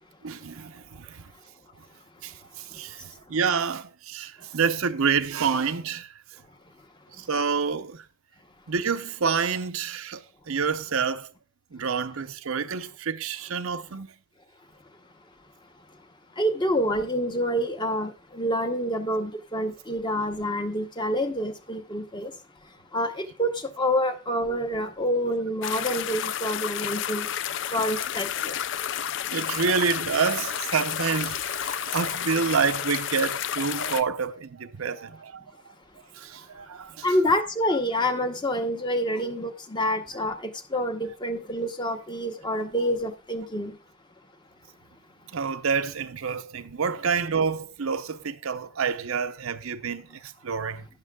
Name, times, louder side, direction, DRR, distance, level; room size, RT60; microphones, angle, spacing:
voice 1, 0.2-1.2 2.2-6.1 7.2-8.1 8.7-11.3 11.7-14.1 28.9-35.4 36.2-37.1 45.3-50.9, right 5 dB, 75° right, 0.7 m, -28 dB
voice 2, 2.4-3.3 6.5-7.3 15.2-15.3 15.6-27.3 27.7-28.8 35.8-35.9 36.5-43.8, equal, 20° left, 0.8 m, -28 dB
sound 1, 25.6-34.0, left 10 dB, 55° left, 0.4 m, -31 dB
12.0 x 10.0 x 2.3 m
head